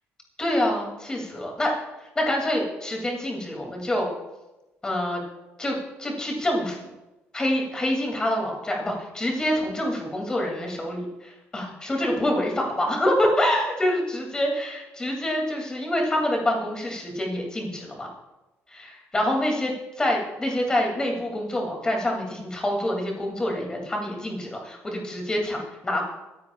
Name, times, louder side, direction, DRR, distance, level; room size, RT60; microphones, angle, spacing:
voice 1, 0.4-1.7 2.1-4.1 4.8-5.2 5.6-6.8 7.3-18.1 19.1-26.0, left 1 dB, 15° left, 0 dB, 2.6 m, -26 dB
23.0 x 10.5 x 2.4 m, 1.0 s
cardioid pair, 155°, 5 cm